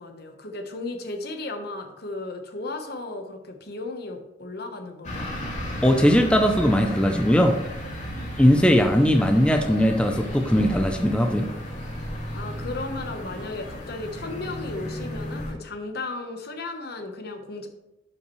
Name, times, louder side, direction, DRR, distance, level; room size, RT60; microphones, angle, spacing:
voice 1, 0.0-5.5 8.0-8.2 12.3-17.7, left 2 dB, 55° left, 5 dB, 1.1 m, -35 dB
sound 1, 5.0-15.5, equal, 40° left, 2.5 m, -34 dB
voice 2, 5.8-7.6 8.4-11.5, equal, 5° left, 4 dB, 0.5 m, -19 dB
11.5 x 5.7 x 3.2 m, 0.94 s
head